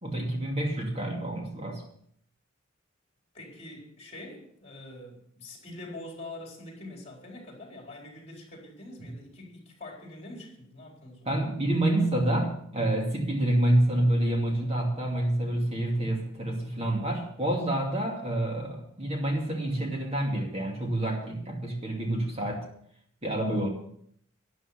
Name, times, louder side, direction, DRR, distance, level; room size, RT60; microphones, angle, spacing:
voice 1, 0.0-1.8 9.0-9.1 11.3-22.7 23.2-23.7, right 1 dB, 30° right, 2.4 m, -28 dB
voice 2, 3.3-11.4, left 2 dB, 30° left, 4.4 m, -44 dB
13.0 x 11.0 x 5.8 m
head